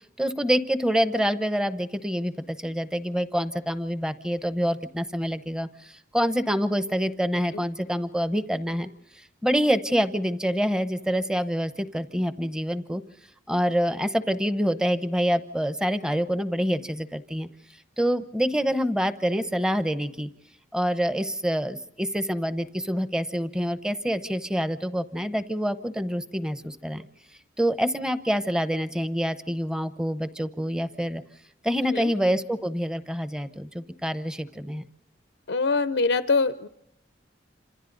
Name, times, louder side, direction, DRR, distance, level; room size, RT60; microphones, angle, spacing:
voice 1, 0.2-8.9 9.1-13.0 13.5-17.5 18.0-20.3 20.7-27.0 27.6-31.2 31.6-34.8, equal, 5° right, 11 dB, 0.8 m, -26 dB
voice 2, 35.5-36.7, left 4 dB, 85° left, 11 dB, 0.7 m, -24 dB
27.5 x 26.5 x 3.9 m, 0.82 s
head